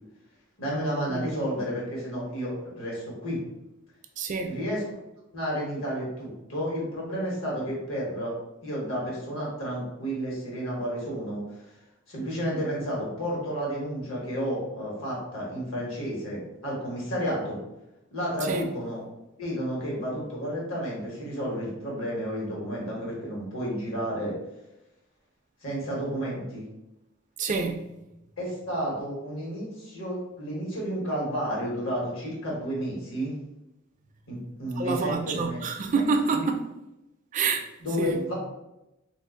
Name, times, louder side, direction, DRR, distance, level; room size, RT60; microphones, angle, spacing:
voice 1, 0.6-3.4 4.5-4.8 5.3-11.4 12.1-17.6 18.1-19.0 19.4-24.3 25.6-26.7 28.4-33.3 34.3-36.4 37.8-38.3, equal, 70° left, 1.3 m, -31 dB
voice 2, 4.2-4.6 18.4-18.6 27.4-27.9 34.8-36.6 37.3-37.7 38.0-38.2, right 4 dB, 35° right, 0.3 m, -27 dB
2.5 x 2.4 x 3.7 m
head